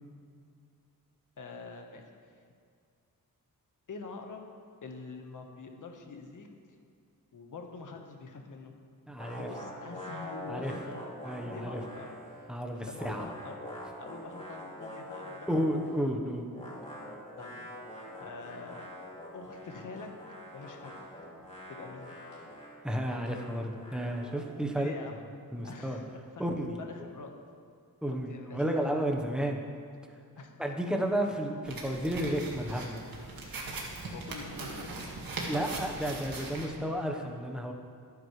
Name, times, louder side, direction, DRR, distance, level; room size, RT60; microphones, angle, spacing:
voice 1, 1.4-2.1 3.9-4.5 4.8-6.5 7.3-8.7 9.4-11.1 11.4-12.1 12.9-13.6 14.0-15.6 17.4-17.7 18.2-18.9 19.3-20.1 20.5-20.9 21.7-22.2 24.8-25.2 25.6-26.1 26.3-26.5 26.9-27.3 28.1-28.7 30.4-30.5 34.1-35.2, left 4 dB, 60° left, 3 dB, 1.5 m, -45 dB
voice 2, 9.1-9.5 10.5-10.7 11.2-11.8 12.5-13.2 15.5-16.5 22.8-24.9 25.5-26.0 26.4-26.8 28.0-29.6 30.6-33.0 35.5-37.7, equal, ahead, 2 dB, 1.2 m, -32 dB
sound 1, 9.2-12.5 12.7-16.0 16.5-24.5, equal, 20° left, 2.9 m, -45 dB
sound 2, 31.6-36.7, right 3 dB, 70° right, 2.1 m, -40 dB
24.5 x 9.1 x 3.3 m, 2.2 s
wide cardioid pair, 145°, 36 cm